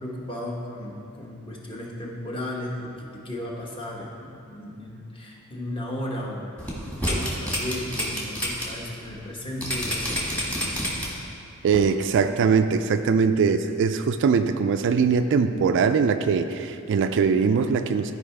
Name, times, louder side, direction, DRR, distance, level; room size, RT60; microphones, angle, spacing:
voice 1, 0.0-10.2, left 1 dB, 25° left, -2 dB, 1.1 m, -35 dB
sound 1, 6.6-8.6 9.0-9.1 9.6-11.3 11.7-11.8, equal, 5° left, 1.5 m, -28 dB
voice 2, 11.6-18.1, right 5 dB, 55° right, 8 dB, 0.3 m, -21 dB
13.5 x 4.8 x 3.3 m, 2.5 s
head